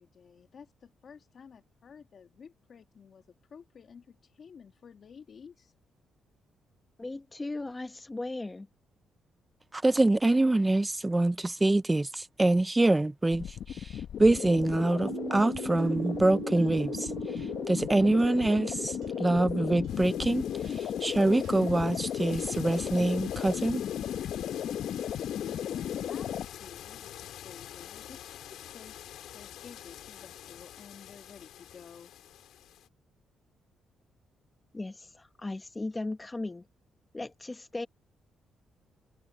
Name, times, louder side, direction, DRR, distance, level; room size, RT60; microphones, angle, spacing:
voice 1, 0.0-5.7 25.0-32.1, left 6 dB, 50° left, 1.8 m, -52 dB
voice 2, 7.0-8.7 34.7-36.6 37.1-37.9, left 2 dB, 15° left, 1.1 m, -37 dB
voice 3, 9.7-17.1 17.7-23.8, right 2 dB, 15° right, 0.4 m, -25 dB
sound 1, 13.3-26.4, left 9 dB, 70° left, 0.7 m, -35 dB
sound 2, 15.0-22.3, right 10 dB, 75° right, 1.2 m, -42 dB
sound 3, 19.9-32.9, left 11 dB, 85° left, 3.8 m, -47 dB
cardioid pair, 120°, 0 cm